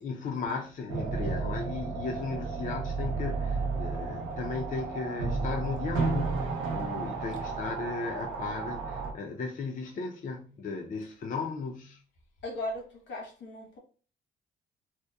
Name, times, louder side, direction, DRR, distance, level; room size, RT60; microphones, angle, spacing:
voice 1, 0.0-12.0, left 4 dB, 40° left, 0.4 m, -36 dB
sound 1, 0.9-9.1, right 4 dB, 80° right, 0.6 m, -32 dB
voice 2, 12.4-13.8, left 1 dB, 65° left, 1.1 m, -37 dB
2.8 x 2.1 x 2.2 m
cardioid pair, 90°, 20 cm